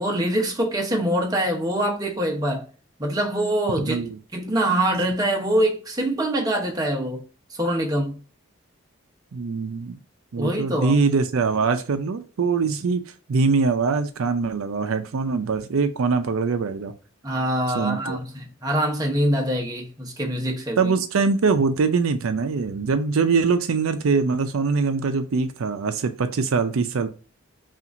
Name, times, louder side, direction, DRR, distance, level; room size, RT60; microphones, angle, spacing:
voice 1, 0.0-2.6 3.0-4.1 4.3-7.2 7.5-8.2 10.4-11.0 17.2-20.9, right 1 dB, 15° right, 0.8 m, -24 dB
voice 2, 3.9-4.2 9.3-10.0 10.3-13.0 13.3-16.9 17.7-18.2 20.8-27.1, right 4 dB, 75° right, 0.5 m, -23 dB
5.7 x 2.5 x 2.5 m
head